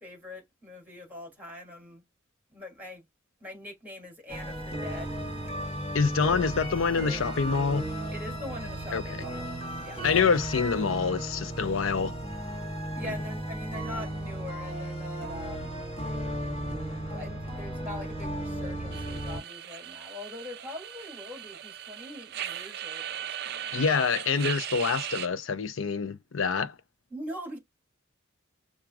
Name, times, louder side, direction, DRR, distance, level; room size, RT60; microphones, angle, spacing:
voice 1, 0.0-2.0 2.5-3.0 3.4-5.2 8.1-9.5 9.8-10.1 12.9-15.8 17.1-23.8 27.1-27.6, left 1 dB, 10° right, 2.7 m, -42 dB
sound 1, 4.3-19.4, right 1 dB, 30° left, 1.8 m, -35 dB
voice 2, 5.9-7.9 8.9-9.2 10.0-12.1 23.7-26.8, left 5 dB, 65° left, 0.5 m, -26 dB
sound 2, 18.9-25.3, right 11 dB, 55° right, 0.4 m, -38 dB
5.9 x 2.3 x 2.4 m
head